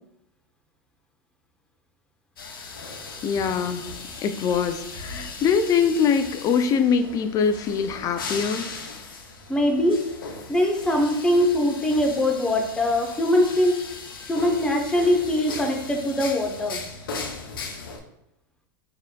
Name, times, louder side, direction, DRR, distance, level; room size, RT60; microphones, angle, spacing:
sound 1, 2.4-18.0, left 4 dB, 85° left, 0.6 m, -38 dB
voice 1, 3.2-3.8 4.2-8.7, left 6 dB, 30° left, 9 dB, 0.4 m, -23 dB
voice 2, 9.5-10.0 10.5-13.8 14.3-16.8, left 1 dB, 10° left, 2 dB, 0.7 m, -22 dB
4.7 x 2.8 x 2.2 m, 0.84 s
hypercardioid pair, 105°, 11 cm